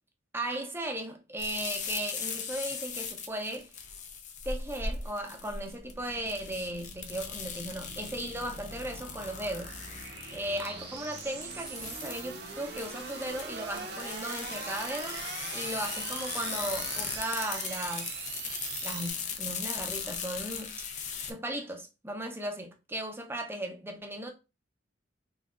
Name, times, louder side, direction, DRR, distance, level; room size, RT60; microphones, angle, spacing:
voice 1, 0.3-3.7 4.4-9.8 10.3-15.2 15.5-18.1 18.8-20.8 21.3-24.3, right 1 dB, 15° right, 0.6 m, -36 dB
sound 1, 1.4-21.3, left 6 dB, 40° left, 0.6 m, -39 dB
sound 2, 5.2-19.1, right 4 dB, 60° right, 0.8 m, -42 dB
3.7 x 3.2 x 2.4 m
head